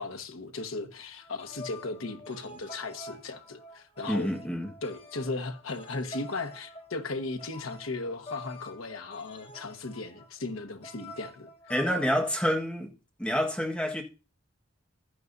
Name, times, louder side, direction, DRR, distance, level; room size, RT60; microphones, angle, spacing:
voice 1, 0.0-4.3 4.8-11.5, left 3 dB, 85° left, 1.3 m, -36 dB
sound 1, 1.2-12.3, left 2 dB, 30° left, 1.2 m, -47 dB
voice 2, 4.1-4.7 11.7-12.9 13.2-14.0, equal, 5° left, 1.4 m, -28 dB
14.5 x 10.5 x 2.7 m
head